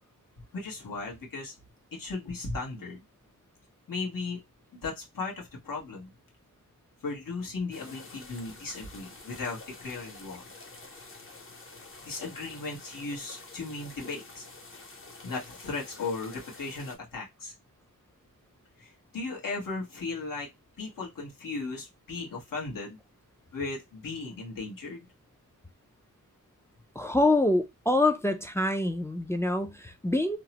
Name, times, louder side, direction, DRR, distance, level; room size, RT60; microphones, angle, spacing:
voice 1, 0.5-1.5 1.9-3.0 3.9-4.4 4.7-6.1 7.0-10.4 12.0-14.4 15.2-17.5 18.8-20.5 20.8-23.0 23.5-25.1, left 3 dB, 80° left, 1.1 m, -36 dB
sound 1, 7.7-17.0, left 3 dB, 40° left, 0.7 m, -48 dB
voice 2, 27.0-30.4, left 2 dB, 10° left, 0.3 m, -25 dB
2.8 x 2.0 x 2.8 m
wide cardioid pair, 85°, 33 cm